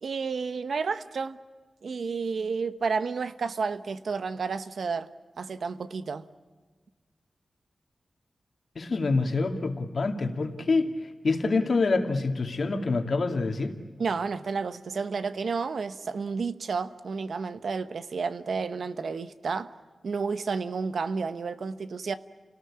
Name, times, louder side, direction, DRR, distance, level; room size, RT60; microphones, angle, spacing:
voice 1, 0.0-1.4 1.8-5.1 5.4-6.3 14.0-19.7 20.0-22.1, right 5 dB, 75° right, 1.0 m, -31 dB
voice 2, 8.7-13.8, left 3 dB, 60° left, 2.5 m, -26 dB
29.5 x 18.5 x 8.7 m
wide cardioid pair, 115°, 0 cm